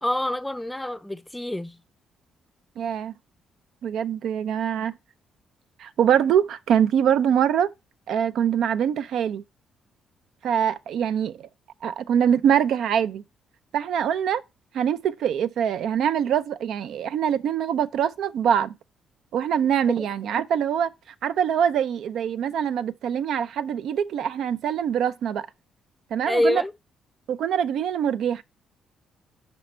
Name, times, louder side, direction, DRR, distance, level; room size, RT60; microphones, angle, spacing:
voice 1, 0.0-1.8 26.3-26.7, left 1 dB, 10° left, 0.4 m, -26 dB
voice 2, 2.8-3.1 3.8-5.0 5.8-7.7 8.1-9.4 10.4-11.5 11.8-13.2 13.7-14.4 14.7-18.7 19.3-20.9 21.2-25.5 26.1-26.6 27.3-28.4, right 8 dB, 75° right, 0.4 m, -24 dB
5.3 x 5.1 x 4.3 m
cardioid pair, 90°, 0 cm